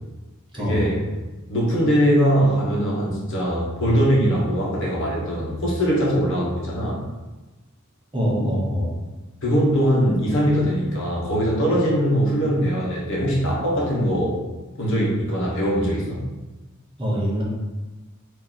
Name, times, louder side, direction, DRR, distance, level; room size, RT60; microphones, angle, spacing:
voice 1, 0.5-1.0 1.5-7.0 9.4-14.4 14.8-16.3, equal, 60° left, -4 dB, 1.1 m, -21 dB
voice 2, 8.1-8.9 17.0-17.4, equal, 25° right, -4 dB, 0.9 m, -23 dB
3.0 x 2.7 x 3.9 m, 1.1 s
head